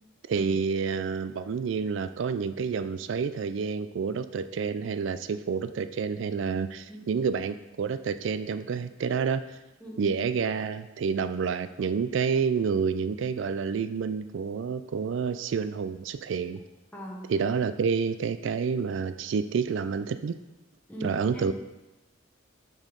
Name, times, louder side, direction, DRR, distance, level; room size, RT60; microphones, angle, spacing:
voice 1, 0.3-9.6 10.0-16.6 17.3-20.4 21.0-21.5, right 5 dB, 65° right, 12 dB, 0.3 m, -29 dB
voice 2, 9.8-10.1 16.9-17.3 20.9-21.5, right 1 dB, 10° left, -2 dB, 1.0 m, -40 dB
6.4 x 6.2 x 3.9 m, 1.0 s
head